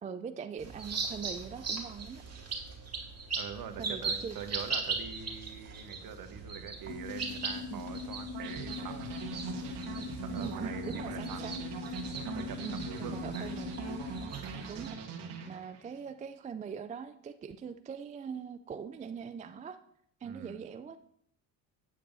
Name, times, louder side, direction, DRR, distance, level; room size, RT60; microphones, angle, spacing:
voice 1, 0.0-2.2 3.8-4.4 7.7-7.9 10.4-11.6 12.6-13.7 14.7-15.0 15.5-19.8 20.2-21.2, right 6 dB, 20° right, 11 dB, 0.3 m, -42 dB
sound 1, 0.6-14.9, right 4 dB, 35° right, 2.3 m, -40 dB
voice 2, 3.4-9.1 9.9-11.5 12.1-13.5 20.2-20.6, right 7 dB, 50° right, 8 dB, 1.2 m, -44 dB
sound 2, 6.9-14.3, left 5 dB, 40° left, 1.4 m, -42 dB
sound 3, 8.3-16.0, right 6 dB, 70° right, 1.5 m, -42 dB
9.2 x 8.4 x 2.7 m, 0.67 s
supercardioid pair, 80°, 43 cm